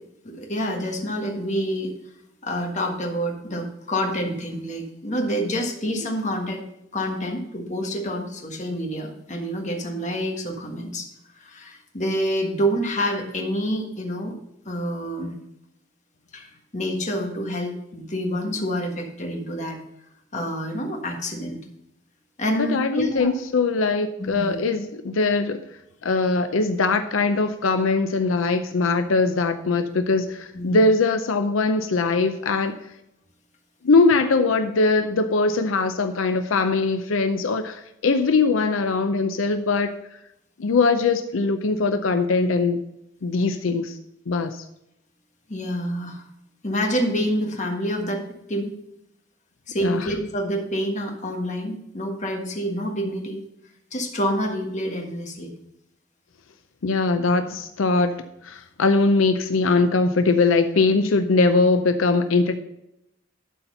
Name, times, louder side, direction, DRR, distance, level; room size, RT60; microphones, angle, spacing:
voice 1, 0.3-1.9 2.4-6.6 6.9-11.1 11.3-14.3 14.6-15.4 16.3-19.8 20.3-21.6 22.4-23.3 24.2-24.6 30.5-30.8 45.5-46.2 46.6-48.2 48.5-48.7 49.7-53.4 53.9-55.5, equal, 35° left, 2 dB, 1.5 m, -27 dB
voice 2, 22.5-25.6 26.0-32.8 33.8-39.9 40.6-42.8 43.2-44.0 44.3-44.6 49.8-50.0 56.8-58.1 58.4-62.6, left 3 dB, 90° left, 8 dB, 0.6 m, -21 dB
12.0 x 4.3 x 5.5 m, 0.81 s
head